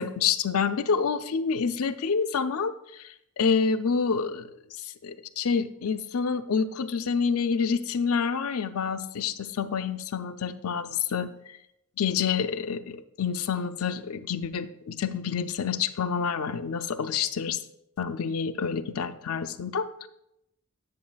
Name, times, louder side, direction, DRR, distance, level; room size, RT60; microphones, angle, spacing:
voice 1, 0.0-4.5 4.8-11.6 12.0-17.6 18.0-20.1, left 6 dB, 75° left, 11 dB, 0.5 m, -28 dB
10.5 x 7.8 x 2.3 m, 0.81 s
head